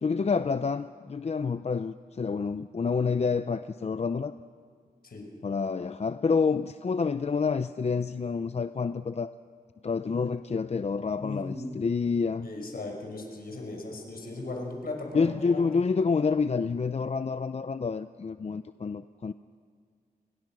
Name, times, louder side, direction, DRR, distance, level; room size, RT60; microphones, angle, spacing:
voice 1, 0.0-4.3 5.4-9.3 9.8-12.5 15.1-19.3, left 5 dB, 40° left, 11 dB, 0.6 m, -28 dB
voice 2, 11.2-11.8 12.4-15.8, left 2 dB, 70° left, 1 dB, 5.7 m, -37 dB
29.5 x 22.5 x 6.2 m, 2.1 s
wide cardioid pair, 85°, 16 cm